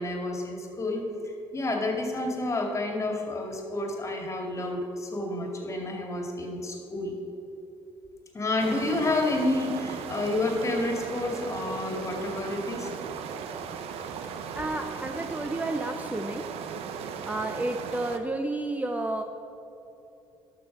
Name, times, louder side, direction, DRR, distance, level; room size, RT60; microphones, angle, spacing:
voice 1, 0.0-7.1 8.3-12.9, left 2 dB, 30° left, 1 dB, 2.2 m, -30 dB
sound 1, 8.6-18.2, right 7 dB, 75° right, 0.8 m, -37 dB
voice 2, 14.5-16.5 17.3-19.2, right 2 dB, 15° right, 6 dB, 0.6 m, -31 dB
12.0 x 6.3 x 5.9 m, 3.0 s
cardioid pair, 85°, 10 cm